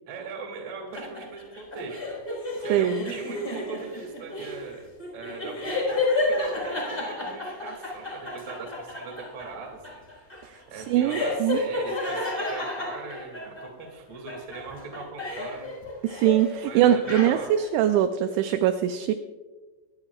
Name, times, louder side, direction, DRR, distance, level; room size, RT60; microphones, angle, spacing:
voice 1, 0.1-2.0 2.6-4.9 5.1-10.1 10.7-15.7 16.7-17.5, right 4 dB, 40° right, 1 dB, 2.8 m, -40 dB
sound 1, 0.9-13.9 14.3-16.5 16.8-17.7, left 2 dB, 10° left, 4.3 m, -31 dB
voice 2, 2.7-3.1 10.4-11.6 16.0-19.1, right 11 dB, 85° right, 9 dB, 2.6 m, -23 dB
23.5 x 10.5 x 2.4 m, 1.3 s
omnidirectional pair, 5.7 m